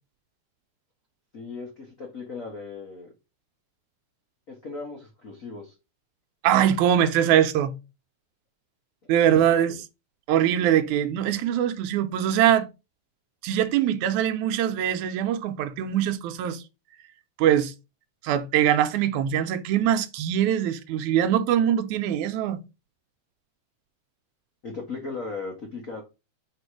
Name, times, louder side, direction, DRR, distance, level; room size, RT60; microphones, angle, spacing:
voice 1, 1.3-3.1 4.5-5.7 9.0-9.1 9.4-9.5 24.6-26.0, left 4 dB, 65° left, 0.8 m, -37 dB
voice 2, 6.4-7.7 9.1-9.9 10.3-12.7 13.4-16.6 17.4-17.7 18.2-22.6, right 10 dB, 85° right, 2.1 m, -22 dB
5.3 x 4.6 x 4.7 m
omnidirectional pair, 3.4 m